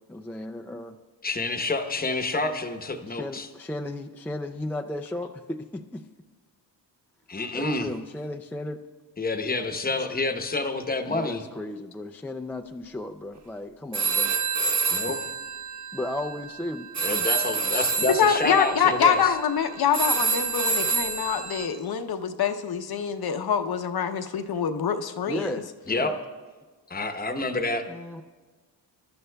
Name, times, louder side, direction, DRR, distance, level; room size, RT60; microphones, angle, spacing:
voice 1, 0.1-1.0 3.1-6.0 7.5-8.8 11.1-14.3 15.9-16.9 25.3-26.2 27.9-28.2, left 1 dB, 5° left, 4 dB, 0.3 m, -35 dB
voice 2, 1.2-3.5 7.3-7.9 9.2-11.4 14.9-15.2 17.0-19.2 25.9-26.1 26.9-27.9, left 2 dB, 20° left, 7 dB, 0.9 m, -28 dB
sound 1, 13.9-21.7, right 4 dB, 40° right, 1.2 m, -28 dB
voice 3, 18.2-25.6, left 7 dB, 60° left, 7 dB, 0.7 m, -25 dB
23.5 x 12.0 x 2.2 m, 1.4 s
wide cardioid pair, 130°, 42 cm